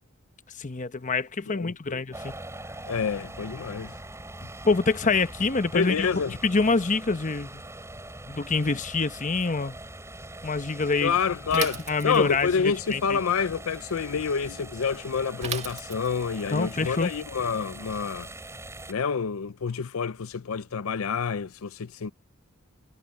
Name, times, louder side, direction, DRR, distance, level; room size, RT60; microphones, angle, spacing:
voice 1, 0.6-2.3 4.6-7.6 8.3-9.8 10.4-11.1 11.5-13.2 16.5-17.1, left 4 dB, 35° left, 0.9 m, -26 dB
voice 2, 1.5-2.0 2.8-3.9 5.7-6.3 11.0-11.8 12.0-18.3 18.9-22.1, left 6 dB, 85° left, 0.5 m, -28 dB
sound 1, 2.1-18.9, right 1 dB, 15° right, 5.8 m, -42 dB
Bicycle / Mechanisms, 11.5-12.5 15.4-16.3, right 6 dB, 30° right, 1.9 m, -35 dB
head